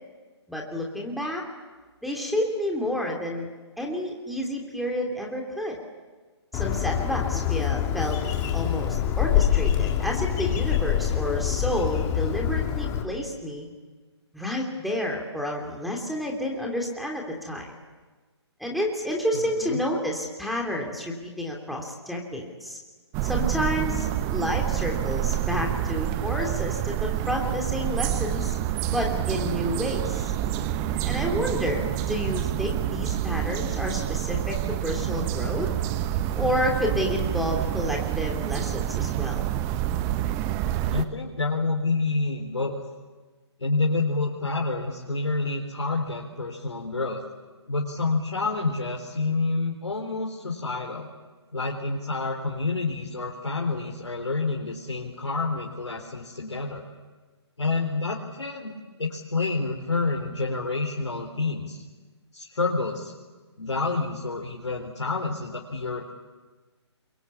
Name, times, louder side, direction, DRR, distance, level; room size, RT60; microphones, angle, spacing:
voice 1, 0.5-1.4 2.0-3.5 3.8-5.8 6.5-8.2 8.5-13.7 14.3-17.7 18.6-22.8 23.2-28.5 28.9-30.3 31.0-35.7 36.3-39.5, equal, ahead, 0 dB, 3.1 m, -30 dB
Bird, 6.5-13.0, left 10 dB, 20° left, 2.6 m, -25 dB
voice 2, 19.3-19.8 31.8-31.9 40.9-42.8 43.6-47.2 47.7-51.1 51.5-56.8 57.6-61.8 62.3-63.1 63.6-66.1, left 3 dB, 80° left, -1 dB, 4.1 m, -28 dB
sound 1, 23.1-41.0, right 12 dB, 20° right, 0.9 m, -28 dB
28.0 x 23.0 x 8.6 m, 1.3 s
figure-of-eight pair, 140°, 15 cm